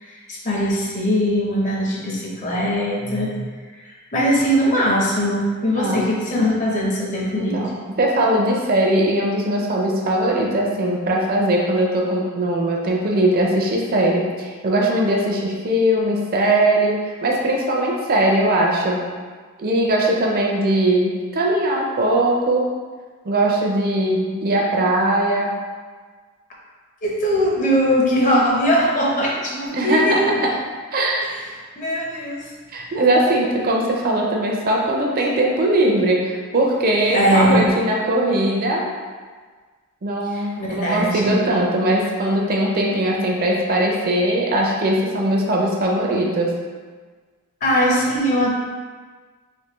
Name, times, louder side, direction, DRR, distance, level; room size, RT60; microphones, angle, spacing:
voice 1, 0.0-3.5 3.8-7.7 27.0-30.4 31.8-32.5 37.1-37.8 40.3-41.4 47.6-48.5, equal, 35° left, -3 dB, 0.6 m, -20 dB
voice 2, 5.8-6.1 7.3-19.0 19.6-22.7 23.2-25.5 29.7-30.5 30.9-31.3 32.7-38.8 40.0-46.5, right 1 dB, 40° right, -1 dB, 0.5 m, -20 dB
3.4 x 2.6 x 2.9 m, 1.5 s
head